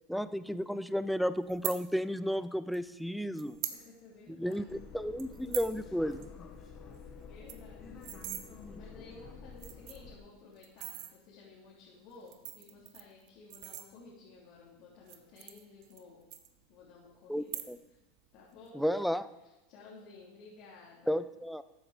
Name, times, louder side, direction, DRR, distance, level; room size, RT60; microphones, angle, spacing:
voice 1, 0.1-3.6 4.4-6.3 17.3-17.8 18.7-19.2 21.1-21.6, equal, ahead, 14 dB, 0.5 m, -33 dB
sound 1, 1.5-1.8 2.7-2.8 3.4-3.8 4.2-4.3 4.5-4.7 5.2-5.7 6.1-6.2 6.5-6.6 6.9-7.0 7.3-8.4 9.1-9.2 9.5-10.1 10.6-11.1 12.1-14.3 15.0-16.0 16.3-16.9 17.4-18.0 18.3-18.7, right 13 dB, 55° right, 1.1 m, -41 dB
voice 2, 3.7-4.8 7.1-7.9 8.3-8.4 8.7-16.2 16.7-18.0 18.3-18.9 19.4-21.2, left 3 dB, 55° left, -5 dB, 3.1 m, -55 dB
sound 2, 4.7-10.2, left 5 dB, 35° left, 1.9 m, -49 dB
13.0 x 7.9 x 5.0 m, 1.1 s
supercardioid pair, 115°, 0 cm